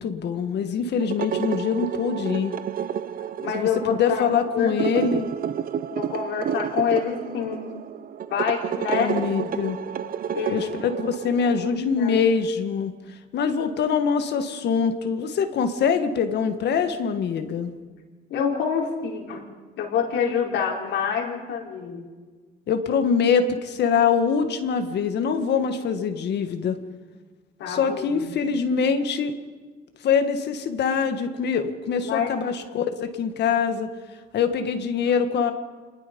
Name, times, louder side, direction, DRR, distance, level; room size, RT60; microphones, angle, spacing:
voice 1, 0.0-2.5 3.5-5.3 8.9-9.8 10.5-12.9 13.3-17.7 22.7-26.8 27.7-29.3 30.0-33.9 34.3-35.5, left 6 dB, 65° left, 7 dB, 1.7 m, -24 dB
sound 1, 1.0-11.8, right 8 dB, 50° right, 0.8 m, -30 dB
voice 2, 3.4-4.2 4.5-5.3 5.9-7.7 8.3-9.1 10.3-10.7 12.0-12.2 18.3-19.5 19.8-22.0 27.6-28.3 32.0-32.3, left 7 dB, 85° left, -1 dB, 4.6 m, -27 dB
27.5 x 20.5 x 5.4 m, 1.4 s
cardioid pair, 115°, 19 cm